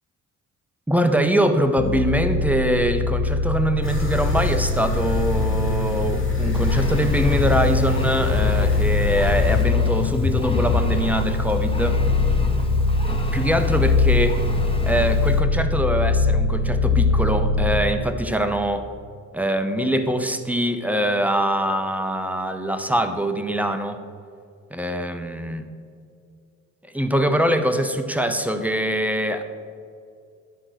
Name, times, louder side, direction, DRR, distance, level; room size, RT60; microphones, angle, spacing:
voice 1, 0.9-12.0 13.3-14.4 14.8-18.9 19.3-24.0 24.7-25.7 26.8-29.4, equal, 5° right, 8 dB, 0.7 m, -23 dB
sound 1, 1.8-17.9, left 3 dB, 65° left, 1.0 m, -22 dB
sound 2, 3.8-9.7, left 1 dB, 30° left, 2.2 m, -30 dB
Engine, 6.5-15.4, left 2 dB, 15° left, 1.3 m, -32 dB
10.0 x 3.9 x 6.3 m, 2.3 s
hypercardioid pair, 45°, 38 cm